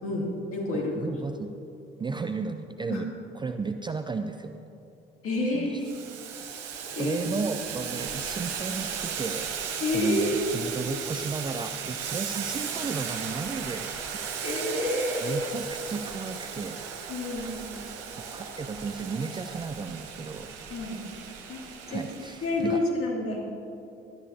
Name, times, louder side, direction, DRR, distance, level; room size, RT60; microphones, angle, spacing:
voice 1, 0.0-1.2 2.9-3.0 5.2-5.8 6.8-7.2 9.8-10.4 14.4-15.4 17.1-17.8 20.7-21.0 21.5-21.6 21.9-22.0 22.4-23.5, left 2 dB, 45° left, -2 dB, 2.7 m, -29 dB
voice 2, 0.7-1.5 2.0-3.1 3.3-4.6 5.5-5.8 7.0-9.5 9.9-13.9 15.2-16.8 17.4-17.6 18.2-20.6 21.9-22.8, right 4 dB, 15° right, 7 dB, 0.4 m, -34 dB
Boiling, 5.8-22.6, right 7 dB, 55° right, 1.1 m, -36 dB
18.0 x 12.0 x 2.8 m, 2.8 s
figure-of-eight pair, 50°, 30 cm